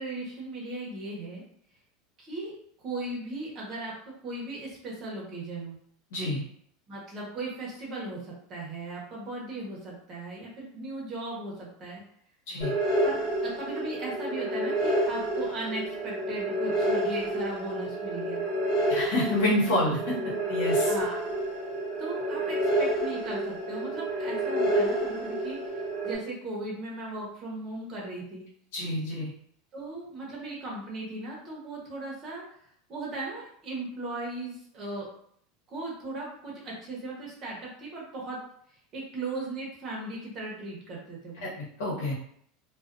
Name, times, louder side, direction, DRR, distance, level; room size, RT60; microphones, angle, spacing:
voice 1, 0.0-1.4 2.2-2.5 2.8-3.9 4.2-5.8 6.9-12.0 13.0-18.4 20.8-21.2 22.0-28.4 29.7-32.4 32.9-35.1 35.7-38.4 38.9-41.4, right 2 dB, 30° right, -4 dB, 0.9 m, -37 dB
voice 2, 6.1-6.4 12.5-12.7 18.9-20.9 28.7-29.3 41.4-42.1, left 1 dB, 75° left, -5 dB, 1.1 m, -28 dB
sound 1, 12.6-26.1, right 1 dB, 55° left, 1.1 m, -29 dB
2.4 x 2.4 x 2.5 m, 0.65 s
supercardioid pair, 155°, 0 cm